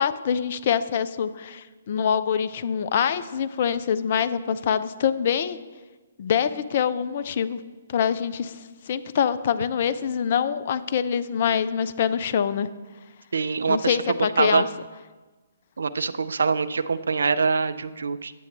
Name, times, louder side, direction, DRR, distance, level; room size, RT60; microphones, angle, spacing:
voice 1, 0.0-5.6 6.2-7.6 7.9-8.6 8.9-12.7 13.7-14.7, left 8 dB, 45° left, 13 dB, 0.4 m, -25 dB
voice 2, 13.3-14.0 14.4-14.6 15.8-18.3, right 4 dB, 65° right, 13 dB, 0.4 m, -24 dB
9.1 x 6.9 x 3.3 m, 1.3 s
figure-of-eight pair, 130°, 0 cm